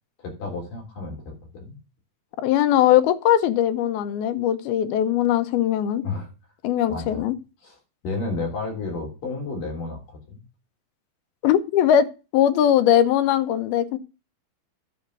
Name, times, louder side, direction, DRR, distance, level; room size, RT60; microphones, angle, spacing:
voice 1, 0.2-1.8 6.0-6.3 6.9-7.2 7.6-7.8 8.0-10.0 10.3-10.4, left 3 dB, 60° left, 0 dB, 5.1 m, -31 dB
voice 2, 2.4-6.0 6.6-7.3 11.4-12.1 12.3-14.0, left 10 dB, 85° left, 11 dB, 2.8 m, -20 dB
10.0 x 5.1 x 6.6 m, 0.30 s
omnidirectional pair, 4.3 m